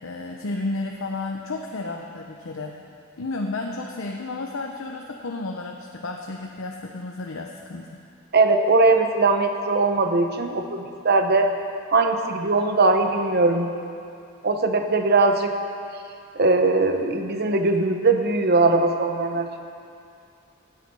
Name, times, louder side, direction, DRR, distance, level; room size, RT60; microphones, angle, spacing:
voice 1, 0.0-2.8 3.2-8.0, left 2 dB, 80° left, 1 dB, 0.8 m, -32 dB
voice 2, 8.3-11.5 11.9-13.7 14.4-15.5 16.4-19.5, right 3 dB, 50° right, 5 dB, 0.9 m, -20 dB
16.5 x 9.2 x 5.4 m, 2.5 s
head